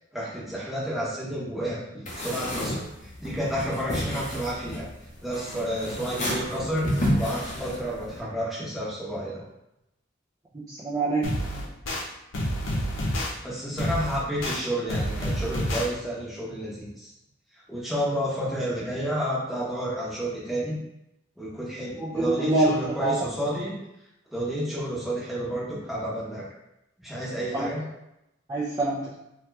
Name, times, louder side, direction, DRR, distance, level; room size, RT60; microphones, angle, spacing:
voice 1, 0.1-4.8 5.2-9.4 13.4-17.1 17.7-20.8 21.4-23.8 24.3-26.4 27.0-27.8, equal, ahead, -8 dB, 0.8 m, -30 dB
sound 1, 2.0-8.2, equal, 40° left, 0.7 m, -31 dB
voice 2, 10.5-11.3 22.0-22.7 23.0-23.3 27.5-27.7 28.5-29.1, right 2 dB, 20° right, -7 dB, 0.4 m, -25 dB
sound 2, 11.2-12.0 12.3-13.3 13.8-14.6 14.9-15.9, equal, 80° left, 0.6 m, -28 dB
2.8 x 2.3 x 3.2 m, 0.87 s
head